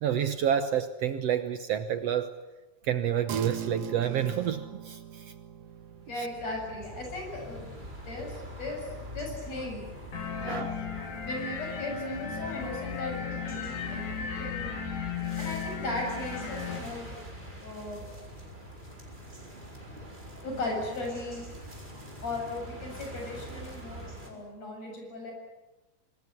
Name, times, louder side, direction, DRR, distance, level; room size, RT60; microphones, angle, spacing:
voice 1, 0.0-2.3 2.8-5.3 6.2-6.3 10.5-10.7 11.0-11.1 23.9-24.0, right 9 dB, 65° right, 10 dB, 1.9 m, -29 dB
sound 1, 3.3-13.0, right 9 dB, 85° right, 2.8 m, -44 dB
sound 2, 5.8-24.3, equal, 15° right, 4.8 m, -43 dB
voice 2, 6.0-7.7 8.1-9.8 10.3-10.8 11.2-14.7 15.4-17.1 17.5-18.0 20.4-21.5 22.2-25.3, left 2 dB, 55° left, 1 dB, 8.7 m, -37 dB
sound 3, 10.1-16.8, left 7 dB, 85° left, 4.4 m, -36 dB
26.0 x 20.5 x 9.7 m, 1.1 s
omnidirectional pair, 3.5 m